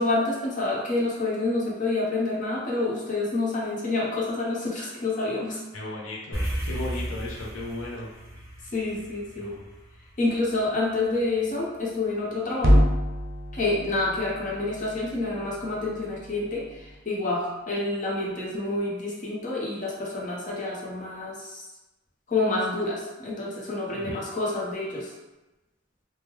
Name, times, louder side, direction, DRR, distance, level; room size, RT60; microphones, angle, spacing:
voice 1, 0.0-5.6 8.7-9.5 10.2-12.8 13.5-21.6 22.3-25.1, left 2 dB, 40° left, -4 dB, 0.8 m, -28 dB
voice 2, 5.7-8.1 9.4-9.7 23.9-24.2, left 2 dB, 90° left, -3 dB, 0.6 m, -36 dB
sound 1, 6.3-10.8, right 1 dB, 15° right, 0.8 m, -34 dB
sound 2, 12.6-17.0, equal, 45° right, 0.6 m, -27 dB
3.0 x 2.1 x 3.5 m, 1.0 s
head